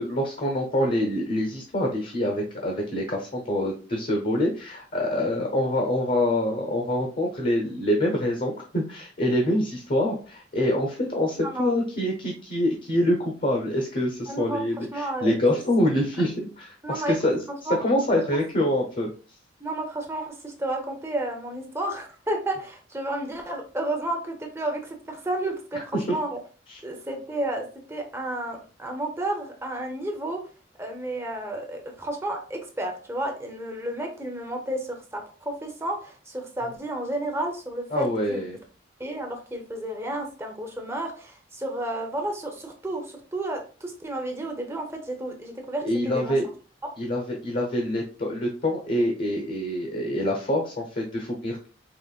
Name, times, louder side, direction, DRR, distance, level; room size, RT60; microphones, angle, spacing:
voice 1, 0.0-17.4 17.8-19.1 25.7-26.1 26.7-26.8 37.9-38.6 45.8-46.5 47.0-51.7, left 1 dB, 45° left, 1 dB, 0.9 m, -25 dB
voice 2, 11.3-11.7 14.3-15.4 16.8-17.1 17.7-17.8 19.6-26.4 26.8-30.4 30.8-38.4 39.0-46.3 46.8-46.9, right 1 dB, 15° right, 2 dB, 0.8 m, -31 dB
5.0 x 3.2 x 2.4 m, 0.38 s
head